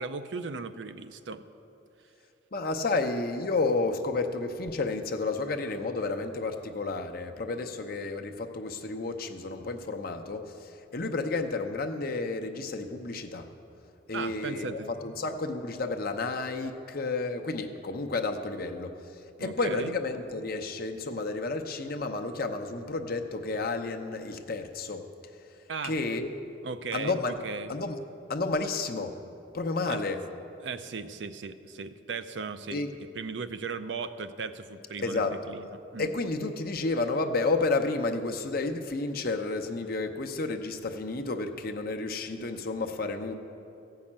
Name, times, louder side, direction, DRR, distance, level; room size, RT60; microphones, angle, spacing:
voice 1, 0.0-1.4 14.1-14.9 19.4-19.9 25.7-25.9 26.6-27.7 29.9-30.0 30.6-32.8 33.1-36.1, right 4 dB, 80° right, 11 dB, 0.6 m, -37 dB
voice 2, 2.5-13.5 14.1-19.0 19.4-25.0 25.8-26.3 26.9-27.3 27.7-28.0 28.3-29.1 29.5-30.2 32.7-32.9 35.0-35.3 36.0-43.3, left 3 dB, 55° left, 5 dB, 0.8 m, -31 dB
14.5 x 5.7 x 8.6 m, 2.8 s
head